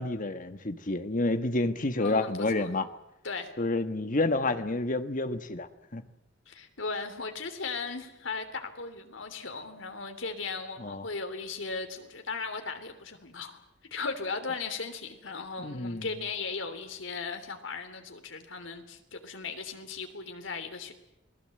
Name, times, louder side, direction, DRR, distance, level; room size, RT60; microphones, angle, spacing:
voice 1, 0.0-2.9 3.6-6.0 10.8-11.0 15.6-16.1, left 2 dB, 45° left, 9 dB, 1.5 m, -29 dB
voice 2, 2.0-2.7 3.2-3.5 6.5-13.6 13.9-20.9, left 4 dB, 80° left, 7 dB, 3.2 m, -37 dB
29.0 x 20.0 x 7.8 m, 0.84 s
head